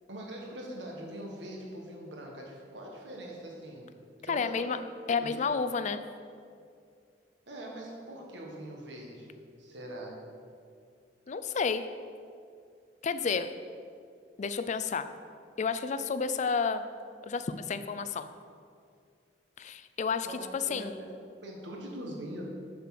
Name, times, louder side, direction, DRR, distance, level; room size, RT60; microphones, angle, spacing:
voice 1, 0.1-3.9 4.2-4.8 5.1-5.4 7.5-10.2 20.2-20.8 21.4-22.4, right 1 dB, 75° right, -1 dB, 1.6 m, -42 dB
voice 2, 4.3-4.8 5.1-6.0 11.3-11.8 13.0-13.6 14.4-15.1 15.6-16.9 17.2-18.3 19.6-20.9, left 5 dB, 40° left, 11 dB, 0.4 m, -31 dB
6.8 x 6.5 x 5.9 m, 2.3 s
head